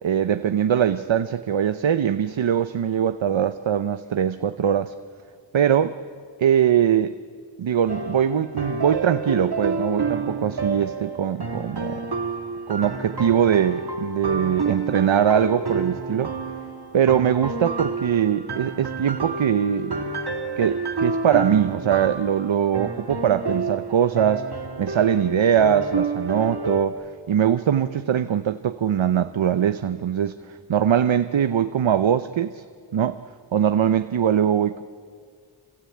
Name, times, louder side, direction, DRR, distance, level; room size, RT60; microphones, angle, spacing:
voice 1, 0.0-4.9 5.5-5.9 6.4-7.2 7.6-12.1 12.7-16.3 16.9-20.0 20.6-27.0 27.3-32.6 32.9-33.2 33.5-34.8, right 9 dB, 75° right, 0.8 m, -22 dB
sound 1, 7.9-26.9, right 3 dB, 55° right, 2.1 m, -29 dB
27.0 x 26.0 x 8.5 m
wide cardioid pair, 75°, 47 cm